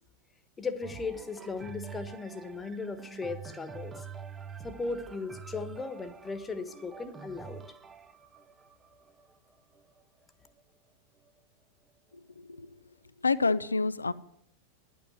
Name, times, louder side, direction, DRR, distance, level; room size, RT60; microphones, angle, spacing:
voice 1, 0.6-4.0 4.6-7.6, left 4 dB, 15° left, 10 dB, 1.3 m, -37 dB
sound 1, 0.8-10.6 11.3-11.4, right 6 dB, 20° right, 0.6 m, -47 dB
voice 2, 13.2-14.1, left 4 dB, 80° left, 16 dB, 0.5 m, -27 dB
10.5 x 8.6 x 9.3 m, 0.73 s
figure-of-eight pair, 90°, 0 cm